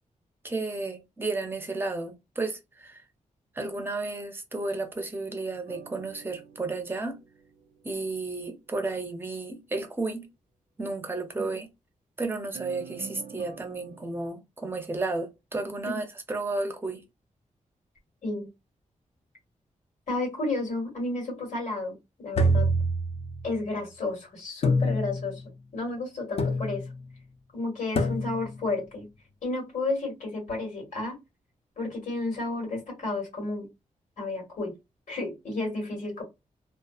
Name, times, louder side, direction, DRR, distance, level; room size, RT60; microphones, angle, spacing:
voice 1, 0.4-3.0 3.5-7.2 7.8-10.3 10.8-11.7 12.2-17.0, right 3 dB, 15° right, 0.5 m, -32 dB
sound 1, 5.7-8.2 12.5-14.3, right 6 dB, 85° right, 0.5 m, -47 dB
voice 2, 20.1-22.7 23.4-25.4 25.7-26.8 27.5-29.0 29.4-31.2 31.8-33.7 34.2-34.7 35.1-36.2, left 2 dB, 70° left, 1.7 m, -32 dB
sound 2, 22.3-23.6 24.6-25.4 26.4-27.0 28.0-28.6, equal, 50° left, 0.5 m, -26 dB
2.7 x 2.3 x 2.3 m
wide cardioid pair, 160°, 13 cm